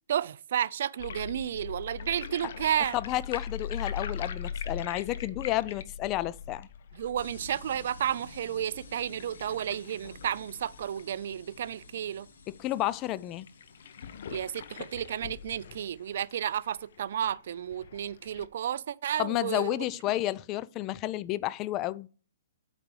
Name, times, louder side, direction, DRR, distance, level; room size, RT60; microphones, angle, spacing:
voice 1, 0.1-3.0 6.9-12.3 14.3-19.8, right 10 dB, 60° right, 0.4 m, -32 dB
sound 1, 1.0-12.0 12.4-12.5 12.7-12.8 13.4-18.5, left 7 dB, 60° left, 0.8 m, -41 dB
voice 2, 2.9-6.7 12.6-13.5 19.2-22.1, left 15 dB, 25° left, 0.4 m, -31 dB
sound 2, 7.2-17.1, left 3 dB, 85° left, 1.5 m, -52 dB
8.2 x 5.1 x 4.8 m
hypercardioid pair, 150°, 0 cm